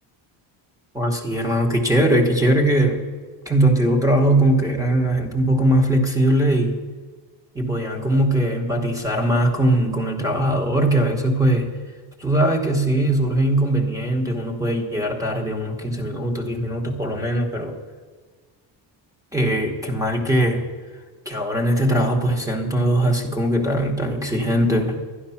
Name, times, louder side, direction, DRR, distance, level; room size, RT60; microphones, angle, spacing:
voice 1, 0.9-3.0 3.5-6.8 7.5-11.7 12.2-17.7 19.3-20.6 21.2-25.0, right 1 dB, 5° right, 4 dB, 1.1 m, -20 dB
11.5 x 11.0 x 5.8 m, 1.5 s
cardioid pair, 180°, 45 cm